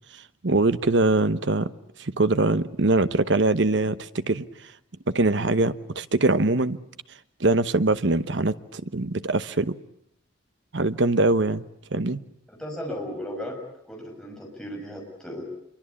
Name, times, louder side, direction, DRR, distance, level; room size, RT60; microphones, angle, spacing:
voice 1, 0.1-1.7 2.0-4.5 5.1-6.8 7.4-9.8 10.7-11.6 11.9-12.2, right 2 dB, 65° right, 1.0 m, -23 dB
voice 2, 12.5-13.6 13.9-15.5, equal, 5° left, 6.6 m, -35 dB
27.0 x 24.0 x 8.4 m
head